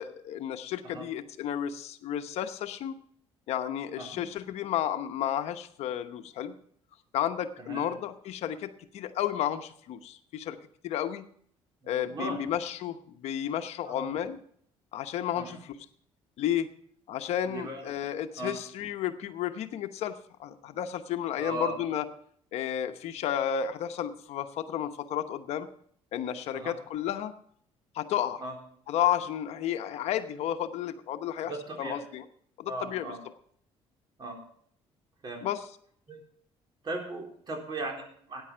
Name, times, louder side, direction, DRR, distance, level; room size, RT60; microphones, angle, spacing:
voice 1, 0.0-2.9 3.5-6.5 7.1-10.6 10.8-11.3 11.9-14.4 14.9-15.8 16.4-16.7 17.1-22.0 22.5-25.7 26.1-27.3 27.9-28.4 28.9-31.5 31.8-32.3 32.6-33.1 35.4-35.6, left 10 dB, 70° left, 9 dB, 0.9 m, -32 dB
voice 2, 7.6-7.9 11.8-12.4 13.8-14.1 15.4-15.6 17.5-17.8 18.4-18.5 21.4-21.8 26.5-26.7 28.4-28.5 31.4-32.0 32.7-33.2 34.2-34.4 35.2-35.4 36.1-36.2 36.8-38.4, right 2 dB, 40° right, 1 dB, 3.9 m, -37 dB
14.0 x 9.6 x 4.5 m, 0.62 s
cardioid pair, 120°, 11 cm